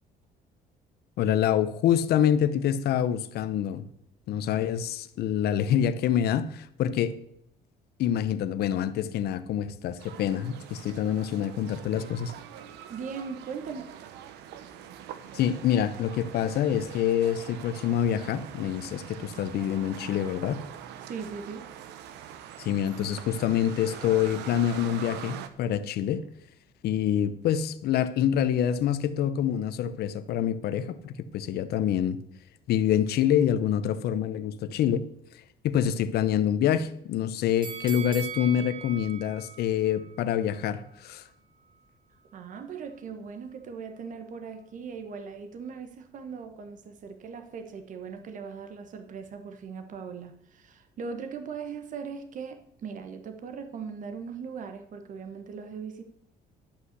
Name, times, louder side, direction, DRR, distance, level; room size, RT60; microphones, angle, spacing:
voice 1, 1.2-3.8 4.3-7.2 8.0-12.3 15.3-20.6 22.6-26.2 26.8-32.2 32.7-35.0 35.6-41.2, left 9 dB, 70° left, 0.8 m, -26 dB
sound 1, 10.0-25.5, right 10 dB, 85° right, 1.0 m, -44 dB
voice 2, 12.9-13.9 21.0-21.7 42.3-56.0, right 6 dB, 50° right, 1.3 m, -39 dB
sound 2, 37.6-40.7 41.1-41.2, right 7 dB, 30° right, 1.9 m, -40 dB
12.0 x 5.7 x 8.1 m
cardioid pair, 110°, 17 cm